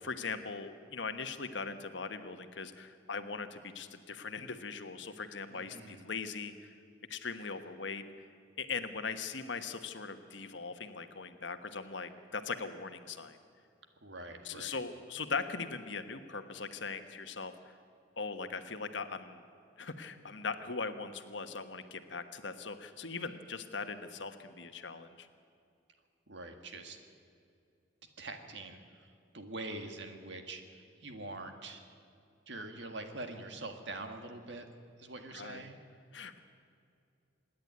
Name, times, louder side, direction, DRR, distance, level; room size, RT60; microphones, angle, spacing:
voice 1, 0.0-6.7 7.1-8.0 8.6-13.4 14.4-17.7 18.2-19.4 19.8-25.3 35.3-35.6 36.1-36.4, left 4 dB, 65° left, 8 dB, 1.2 m, -40 dB
voice 2, 5.5-6.1 14.0-14.8 26.3-27.0 28.2-31.8 32.5-34.6 35.0-35.8, right 2 dB, 65° right, 5 dB, 1.8 m, -44 dB
26.5 x 10.5 x 9.6 m, 2.4 s
head